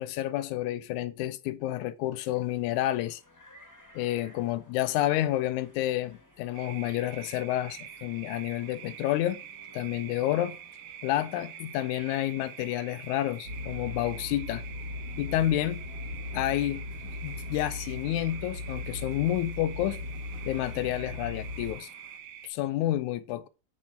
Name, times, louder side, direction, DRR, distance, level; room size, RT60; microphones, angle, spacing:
voice 1, 0.0-3.2 4.0-9.4 9.7-10.6 11.0-14.6 15.2-15.8 16.3-16.8 17.2-20.0 20.5-21.9 22.4-23.5, left 13 dB, 80° left, 1.9 m, -29 dB
sound 1, 2.3-22.2, left 1 dB, 20° left, 0.4 m, -58 dB
sound 2, 6.5-22.5, right 10 dB, 75° right, 1.6 m, -46 dB
sound 3, 13.4-21.8, left 2 dB, 45° right, 2.6 m, -38 dB
8.6 x 4.5 x 5.7 m
omnidirectional pair, 3.7 m